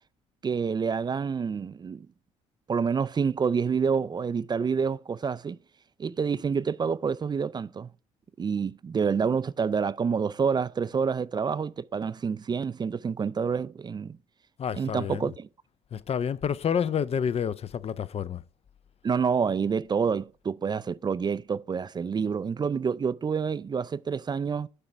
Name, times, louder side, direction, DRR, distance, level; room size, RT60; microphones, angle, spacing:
voice 1, 0.4-2.1 2.7-5.6 6.0-7.9 8.4-14.2 14.7-15.5 19.0-24.7, right 6 dB, 25° right, 0.4 m, -28 dB
voice 2, 14.6-15.3 15.9-18.4, left 8 dB, 40° left, 0.5 m, -29 dB
6.7 x 5.9 x 4.4 m
hypercardioid pair, 55°, 16 cm